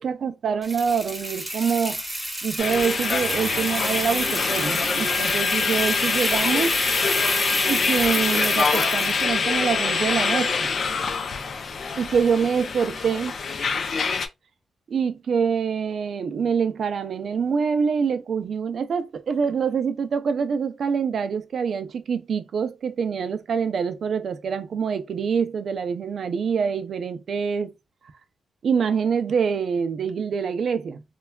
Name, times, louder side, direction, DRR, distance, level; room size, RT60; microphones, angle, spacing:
voice 1, 0.0-2.0 2.4-6.8 7.6-10.7 12.0-13.3 14.9-27.7 28.6-31.0, right 6 dB, 65° right, 0.4 m, -25 dB
sound 1, 0.6-9.3, right 1 dB, 5° right, 0.9 m, -30 dB
sound 2, 2.6-14.3, left 5 dB, 60° left, 0.4 m, -25 dB
3.2 x 2.2 x 2.2 m
cardioid pair, 90°, 0 cm